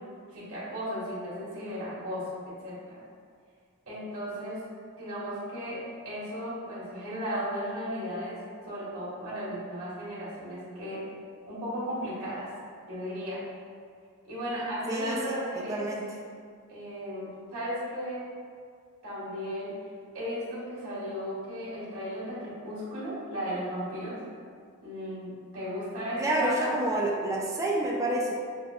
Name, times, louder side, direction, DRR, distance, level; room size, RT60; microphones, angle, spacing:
voice 1, 0.3-3.0 3.9-4.6 4.9-11.0 11.5-12.5 12.9-13.4 14.2-15.9 16.7-18.3 19.0-19.8 20.1-24.2 24.8-26.8, equal, 75° right, -9 dB, 1.3 m, -35 dB
voice 2, 14.9-15.4 15.7-16.1 26.2-28.3, right 1 dB, 15° right, -3 dB, 0.3 m, -28 dB
5.3 x 2.2 x 2.2 m, 2.1 s
head